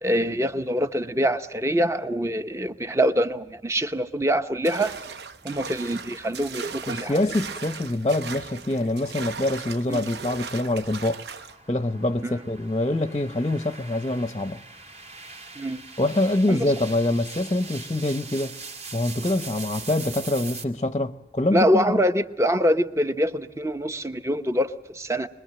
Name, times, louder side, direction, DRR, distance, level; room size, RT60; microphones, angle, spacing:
voice 1, 0.0-4.9 5.4-7.2 9.9-10.1 12.2-12.4 15.6-15.8 16.5-16.7 21.5-25.3, equal, 15° right, 0.9 m, -24 dB
sound 1, 4.7-11.6, right 5 dB, 70° right, 0.9 m, -37 dB
voice 2, 6.9-11.2 11.7-14.6 16.0-18.6 18.9-22.0, left 1 dB, 25° left, 0.8 m, -25 dB
sound 2, 8.8-20.6, right 4 dB, 40° right, 2.2 m, -42 dB
25.0 x 21.5 x 7.7 m
head